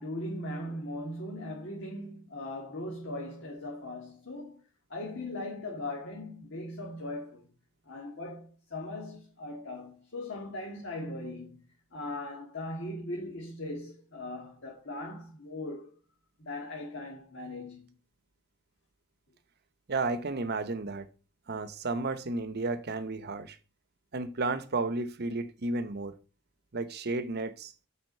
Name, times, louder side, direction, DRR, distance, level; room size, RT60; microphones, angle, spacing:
voice 1, 0.0-4.6 4.9-7.4 7.9-15.9 16.4-17.9, left 1 dB, 60° left, 1.9 m, -39 dB
voice 2, 19.9-21.1 21.5-23.6 24.1-26.1 26.7-27.7, right 3 dB, 50° right, 0.9 m, -32 dB
8.0 x 5.0 x 5.5 m
head